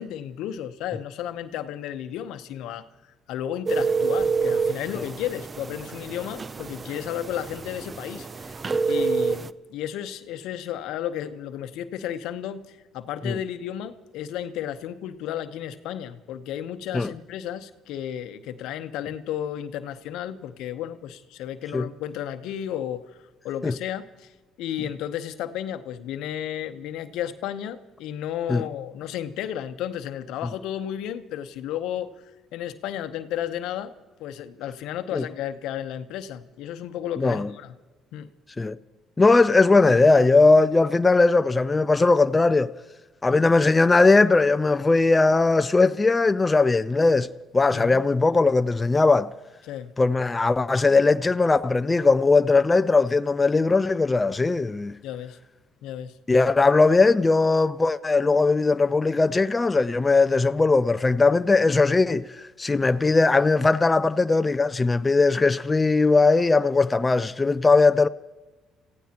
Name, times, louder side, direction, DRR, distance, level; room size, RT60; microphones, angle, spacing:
voice 1, 0.0-2.8 3.3-8.5 8.9-23.1 23.4-24.3 24.6-32.1 32.5-33.9 34.2-37.7 38.1-38.3 47.7-48.0 49.7-49.9 55.0-55.4 55.8-56.1, left 10 dB, 80° left, 0.9 m, -33 dB
sound 1, 3.7-9.5, right 5 dB, 30° right, 0.5 m, -27 dB
voice 2, 39.2-42.7 43.2-49.3 50.0-54.9 56.3-68.1, left 3 dB, 20° left, 0.5 m, -19 dB
28.0 x 16.0 x 2.9 m
supercardioid pair, 75°, 0 cm